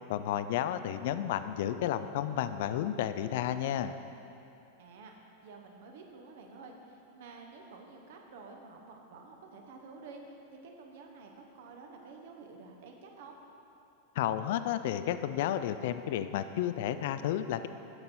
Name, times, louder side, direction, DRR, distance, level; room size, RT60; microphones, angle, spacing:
voice 1, 0.1-3.9 14.2-17.7, left 11 dB, 50° left, 11 dB, 0.3 m, -32 dB
voice 2, 4.8-10.4 10.6-13.4, right 4 dB, 55° right, 2 dB, 1.0 m, -50 dB
8.8 x 6.7 x 4.3 m, 2.9 s
figure-of-eight pair, 90°, 0 cm